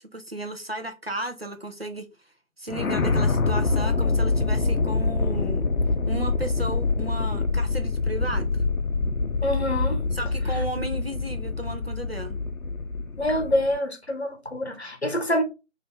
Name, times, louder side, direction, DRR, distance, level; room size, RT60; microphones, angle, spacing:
voice 1, 0.1-2.1 2.6-5.6 6.1-8.5 10.1-12.4, right 1 dB, 50° right, 0.6 m, -34 dB
sound 1, 2.7-13.8, left 3 dB, 85° left, 0.6 m, -25 dB
voice 2, 9.4-10.0 13.2-15.4, left 1 dB, 55° left, 0.8 m, -26 dB
3.2 x 2.6 x 3.6 m
figure-of-eight pair, 180°, 40 cm